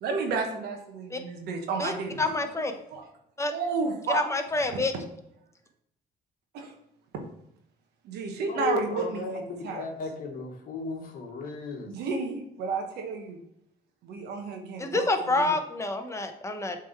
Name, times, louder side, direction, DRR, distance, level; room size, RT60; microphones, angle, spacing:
voice 1, 0.0-3.0 3.5-4.2 6.5-6.7 7.1-7.2 8.0-9.2 9.6-9.9 11.9-13.4 14.0-15.5, right 4 dB, 75° right, 3 dB, 1.2 m, -32 dB
voice 2, 2.2-2.7 3.4-3.5 4.1-4.9 14.8-16.8, left 2 dB, 15° left, 6 dB, 0.9 m, -27 dB
voice 3, 8.5-11.9, left 3 dB, 55° left, 1 dB, 1.4 m, -35 dB
7.6 x 3.6 x 4.5 m, 0.78 s
cardioid pair, 110°, 17 cm